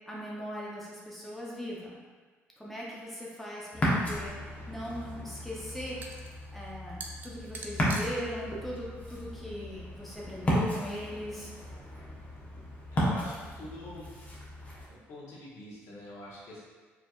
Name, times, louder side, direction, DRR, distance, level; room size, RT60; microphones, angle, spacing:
voice 1, 0.1-2.0 2.6-11.5, equal, 5° left, -5 dB, 0.8 m, -40 dB
Ocean, 3.7-14.9, equal, 30° left, 1.1 m, -34 dB
sound 1, 4.5-10.2, right 3 dB, 40° right, 0.5 m, -48 dB
voice 2, 12.9-14.1 14.9-16.6, left 1 dB, 70° left, -7 dB, 1.4 m, -45 dB
4.7 x 3.3 x 2.4 m, 1.4 s
cardioid pair, 105°, 5 cm